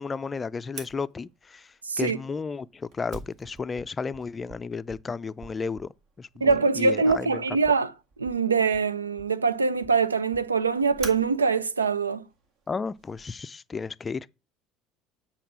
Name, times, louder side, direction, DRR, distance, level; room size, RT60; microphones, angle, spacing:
voice 1, 0.0-5.9 6.2-7.4 12.7-14.3, left 5 dB, 25° left, 0.4 m, -33 dB
Fire, 0.7-13.2, right 4 dB, 55° right, 1.9 m, -47 dB
voice 2, 1.9-2.2 6.4-7.9 8.2-12.3, right 4 dB, 85° right, 0.4 m, -23 dB
7.8 x 4.1 x 6.1 m
figure-of-eight pair, 65°, 0 cm